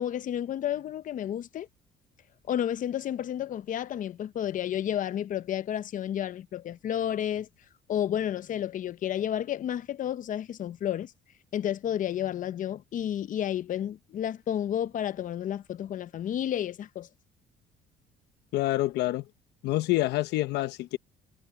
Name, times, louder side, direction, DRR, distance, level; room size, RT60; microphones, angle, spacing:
voice 1, 0.0-1.7 2.5-7.5 7.9-11.1 11.5-17.1, left 10 dB, 50° left, 0.8 m, -31 dB
voice 2, 18.5-19.2 19.6-21.0, left 17 dB, 80° left, 1.0 m, -27 dB
cardioid pair, 110°, 17 cm